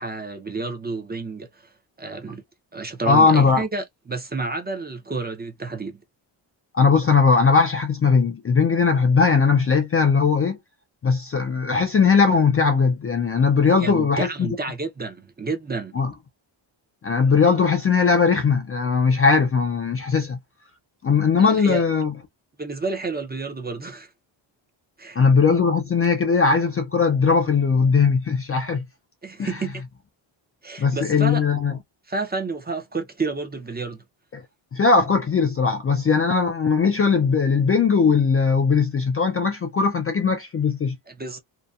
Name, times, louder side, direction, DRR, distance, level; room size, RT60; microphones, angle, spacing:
voice 1, 0.0-1.7 2.0-2.4 2.7-6.0 13.8-15.9 21.4-21.8 22.6-24.1 25.0-25.2 29.2-29.7 30.6-31.4 32.1-34.0 41.1-41.4, right 3 dB, 20° right, 0.5 m, -30 dB
voice 2, 3.1-3.6 6.7-10.6 11.0-14.5 16.0-16.1 17.0-20.4 21.0-22.1 25.2-28.8 29.4-29.6 30.8-31.7 34.3-34.4 34.7-41.0, left 5 dB, 30° left, 0.4 m, -19 dB
2.6 x 2.1 x 2.3 m
cardioid pair, 115°, 48 cm